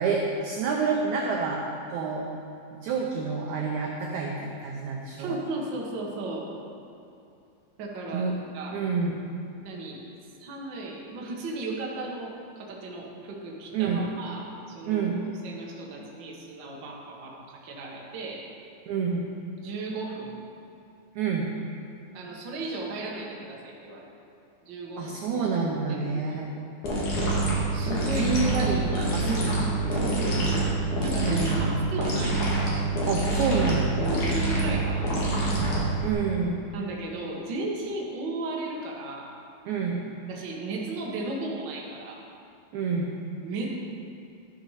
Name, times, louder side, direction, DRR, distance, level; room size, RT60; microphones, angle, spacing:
voice 1, 0.0-1.6 1.9-2.3 2.8-5.4 8.1-8.4 8.7-9.2 13.7-14.0 14.9-15.2 18.9-19.3 21.1-21.5 25.0-26.5 28.1-29.4 29.9-30.3 31.2-31.8 33.0-34.0 36.0-36.6 39.6-40.0 42.7-43.1, right 5 dB, 80° right, -1 dB, 1.7 m, -28 dB
voice 2, 5.2-6.5 7.8-8.8 9.5-10.0 10.4-12.3 12.6-15.1 15.4-18.5 19.6-20.4 22.1-24.1 24.6-25.2 25.9-26.5 27.7-29.6 29.9-30.7 31.0-32.5 34.0-35.4 36.7-39.3 40.3-42.2 43.4-43.9, right 2 dB, 60° right, -2 dB, 1.1 m, -35 dB
sound 1, 26.8-36.1, right 2 dB, 55° left, 3.1 m, -26 dB
12.5 x 6.0 x 5.7 m, 2.7 s
omnidirectional pair, 4.3 m